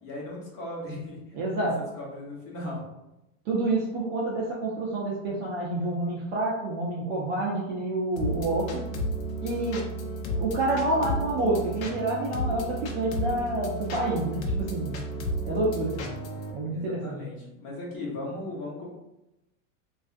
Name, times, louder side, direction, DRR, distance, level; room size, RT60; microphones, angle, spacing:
voice 1, 0.0-1.2 1.6-1.7 1.9-2.8 16.7-18.9, left 1 dB, 35° left, -4 dB, 1.1 m, -37 dB
voice 2, 1.3-1.8 3.5-8.8 9.4-9.8 10.4-15.0 15.5-16.1 16.5-17.2, right 2 dB, 30° right, -4 dB, 0.4 m, -28 dB
sound 1, 8.2-16.5, right 1 dB, 85° left, 0.7 m, -32 dB
3.3 x 2.4 x 2.5 m, 0.93 s
supercardioid pair, 150°, 39 cm